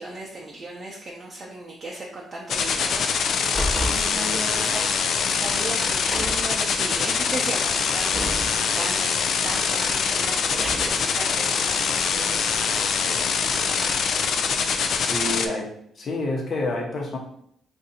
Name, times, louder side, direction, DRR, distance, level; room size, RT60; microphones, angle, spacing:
voice 1, 0.0-3.6 3.9-13.2 13.6-14.4, right 2 dB, 40° right, -2 dB, 0.6 m, -37 dB
sound 1, 2.5-15.5, left 6 dB, 65° left, 0.3 m, -24 dB
Car, 3.3-4.1 5.1-5.2 5.9-6.5 7.9-8.6 10.4-11.1, equal, 20° left, 1.2 m, -30 dB
voice 2, 3.9-4.7 15.0-15.7 16.0-17.2, left 2 dB, 45° left, -1 dB, 0.9 m, -29 dB
2.6 x 2.5 x 4.2 m, 0.68 s
cardioid pair, 90°, 0 cm